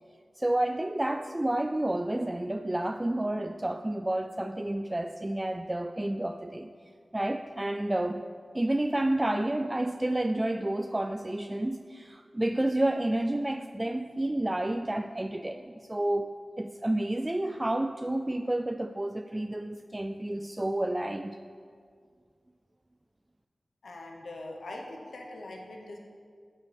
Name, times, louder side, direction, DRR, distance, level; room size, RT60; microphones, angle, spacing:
voice 1, 0.4-6.7 7.1-8.2 8.5-21.4, right 1 dB, 20° right, 7 dB, 0.3 m, -30 dB
voice 2, 23.8-26.0, left 2 dB, 90° left, 0 dB, 1.1 m, -42 dB
14.0 x 7.8 x 3.4 m, 2.1 s
wide cardioid pair, 65°, 0 cm